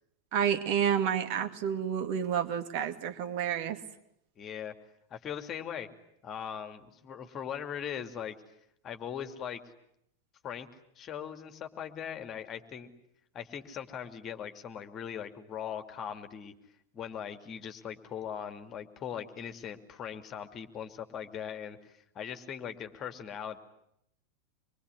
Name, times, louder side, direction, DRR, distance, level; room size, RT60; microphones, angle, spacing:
voice 1, 0.3-3.8, right 8 dB, 45° right, 8 dB, 2.5 m, -29 dB
voice 2, 4.4-4.7 5.1-5.9 6.2-8.4 8.8-9.6 10.4-10.7 11.0-12.9 13.3-16.5 16.9-23.6, left 8 dB, 30° left, 7 dB, 2.6 m, -40 dB
25.5 x 23.5 x 9.8 m, 0.76 s
figure-of-eight pair, 90°, 0 cm